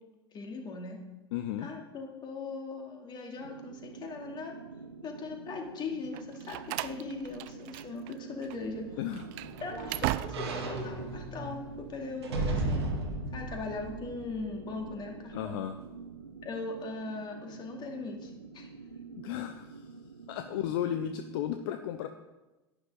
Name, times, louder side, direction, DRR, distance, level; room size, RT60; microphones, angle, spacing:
voice 1, 0.3-1.0 1.6-4.5 5.0-8.8 9.6-12.8 13.3-15.6 16.4-18.7, left 3 dB, 30° left, 1 dB, 2.4 m, -39 dB
voice 2, 1.3-1.7 9.0-9.3 15.3-15.8 19.2-19.9 20.3-22.1, left 10 dB, 60° left, 9 dB, 0.7 m, -34 dB
sound 1, 3.4-21.4, right 5 dB, 90° right, 0.7 m, -47 dB
Slam, 6.1-8.2 8.4-8.6 9.1-10.7, right 18 dB, 50° right, 0.4 m, -37 dB
sound 2, 8.6-14.9 15.4-15.5, right 2 dB, 75° right, 1.6 m, -36 dB
11.0 x 10.0 x 3.9 m, 1.1 s
figure-of-eight pair, 80°, 14 cm